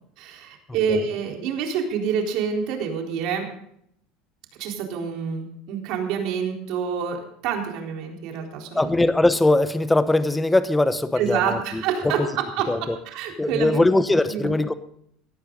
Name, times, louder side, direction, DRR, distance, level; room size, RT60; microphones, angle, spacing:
voice 1, 0.2-3.5 4.6-8.9 11.2-12.7 13.1-13.8 14.3-14.5, right 7 dB, 60° right, 2 dB, 3.9 m, -27 dB
voice 2, 8.7-12.3 12.7-13.0 13.4-14.7, left 2 dB, 10° left, 12 dB, 0.9 m, -21 dB
18.0 x 14.0 x 3.9 m, 0.70 s
cardioid pair, 145°, 0 cm